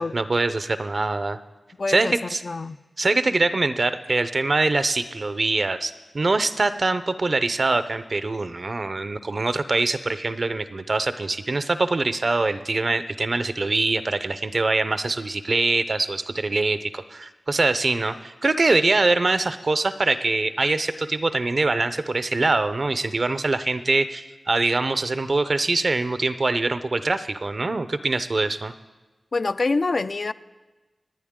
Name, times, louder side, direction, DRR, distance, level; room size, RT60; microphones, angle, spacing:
voice 1, 0.0-1.4 1.9-2.4 3.0-28.7, right 3 dB, 50° right, 12 dB, 0.6 m, -23 dB
voice 2, 1.8-2.8 29.3-30.3, left 3 dB, 55° left, 12 dB, 0.4 m, -26 dB
28.0 x 9.4 x 3.7 m, 1.2 s
wide cardioid pair, 90°, 0 cm